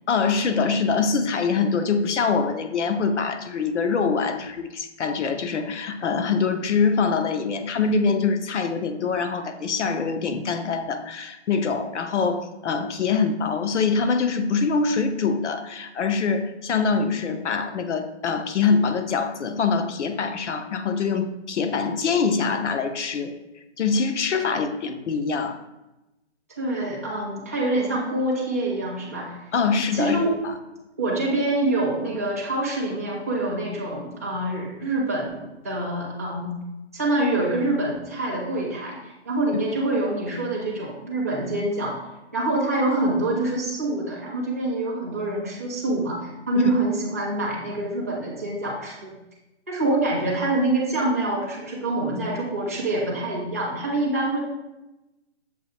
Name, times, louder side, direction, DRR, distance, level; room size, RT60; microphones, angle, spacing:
voice 1, 0.1-23.3 23.8-25.6 29.5-30.5, left 5 dB, 80° left, 8 dB, 0.6 m, -24 dB
voice 2, 26.6-29.4 29.9-30.3 31.0-36.5 36.9-42.0 42.3-49.1 49.7-54.4, right 2 dB, 15° right, -6 dB, 0.4 m, -26 dB
6.7 x 2.5 x 3.2 m, 0.98 s
hypercardioid pair, 155°, 35 cm